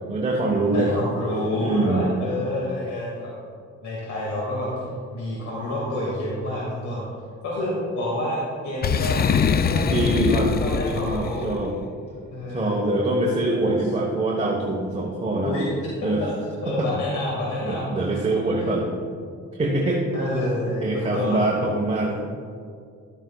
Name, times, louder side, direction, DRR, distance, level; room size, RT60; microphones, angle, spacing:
voice 1, 0.1-1.0 1.6-2.1 9.8-10.5 10.9-11.8 12.5-15.5 16.0-16.3 16.7-16.9 17.6-18.9 19.5-20.1 20.8-22.1, right 2 dB, 20° right, -1 dB, 1.2 m, -24 dB
voice 2, 0.7-3.3 3.8-4.7 5.1-7.1 7.4-9.2 9.5-11.5 12.3-13.0 15.4-15.7 16.0-16.3 16.6-18.0 20.1-21.5 22.1-22.2, left 1 dB, 70° left, -5 dB, 2.3 m, -28 dB
Boom, 8.8-11.6, left 6 dB, 35° left, 0.4 m, -23 dB
12.0 x 8.9 x 2.4 m, 2.2 s
cardioid pair, 90°, 30 cm